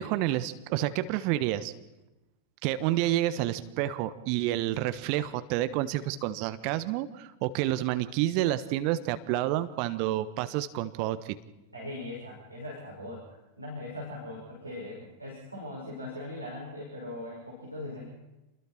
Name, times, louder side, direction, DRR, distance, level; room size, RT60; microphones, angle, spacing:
voice 1, 0.0-1.7 2.6-11.3, right 14 dB, 45° right, 12 dB, 1.2 m, -29 dB
voice 2, 11.7-18.1, left 1 dB, 85° right, -2 dB, 5.8 m, -40 dB
28.5 x 21.5 x 4.5 m, 1.0 s
figure-of-eight pair, 90°, 0 cm